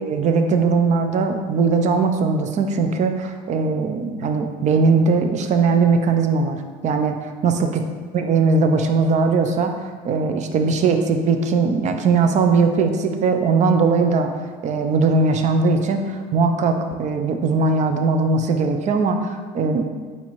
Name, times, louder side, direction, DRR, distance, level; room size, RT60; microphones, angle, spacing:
voice 1, 0.0-6.6 6.8-7.2 7.4-7.8 8.1-9.7 10.0-14.3 14.6-19.8, right 4 dB, 35° right, 6 dB, 0.4 m, -19 dB
4.2 x 4.1 x 3.0 m, 1.5 s
supercardioid pair, 110°, 20 cm